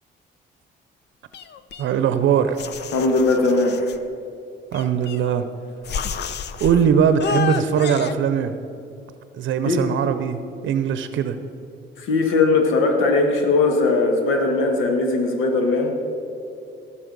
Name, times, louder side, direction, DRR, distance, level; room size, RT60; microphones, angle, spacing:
sound 1, 1.3-2.2 2.6-4.0 4.7-5.5 5.8-6.8 7.2-8.1, left 6 dB, 60° left, 0.6 m, -30 dB
voice 1, 1.8-2.6 4.7-5.5 6.6-8.6 9.4-11.4, right 8 dB, 75° right, 10 dB, 0.7 m, -20 dB
voice 2, 2.9-3.9 9.6-9.8 12.0-15.9, left 3 dB, 90° left, 4 dB, 1.4 m, -19 dB
18.0 x 6.6 x 5.3 m, 2.7 s
cardioid pair, 90°, 20 cm